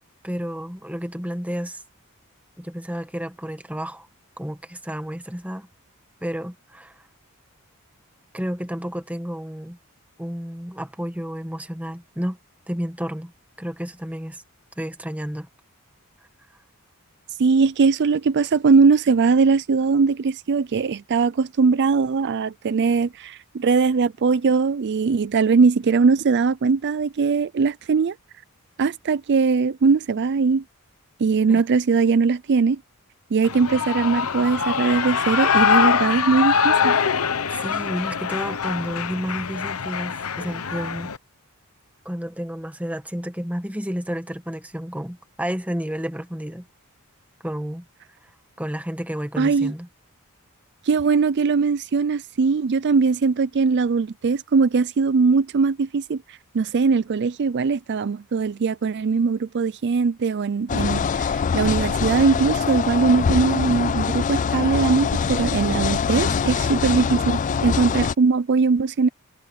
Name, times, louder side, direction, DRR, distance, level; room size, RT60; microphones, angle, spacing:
voice 1, 0.2-1.8 2.6-4.1 4.4-5.7 6.2-7.0 8.3-9.8 10.2-12.4 12.7-13.3 13.6-14.4 14.8-15.5 31.5-31.6 37.5-41.1 42.0-46.7 47.4-47.9 48.6-49.9, equal, 5° right, 1.7 m, -31 dB
voice 2, 17.4-28.1 28.8-30.6 31.2-32.8 33.3-37.0 49.4-49.7 50.8-69.1, right 4 dB, 50° right, 0.4 m, -20 dB
Shout / Cheering, 33.4-41.2, left 6 dB, 75° left, 1.0 m, -23 dB
sound 1, 60.7-68.1, left 6 dB, 35° left, 0.3 m, -23 dB
head